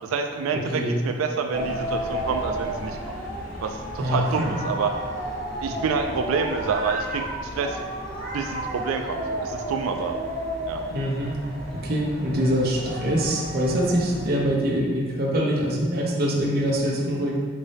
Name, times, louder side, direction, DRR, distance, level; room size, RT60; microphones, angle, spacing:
voice 1, 0.0-3.2 3.6-4.9 5.6-7.8 8.3-10.2 10.7-10.8, right 5 dB, 85° right, 5 dB, 0.3 m, -28 dB
voice 2, 0.5-1.0 4.0-4.2 10.9-11.4 11.7-17.4, equal, 45° right, -2 dB, 0.7 m, -24 dB
sound 1, 1.5-14.3, right 1 dB, 20° left, 1.0 m, -32 dB
5.1 x 2.6 x 3.4 m, 1.5 s
head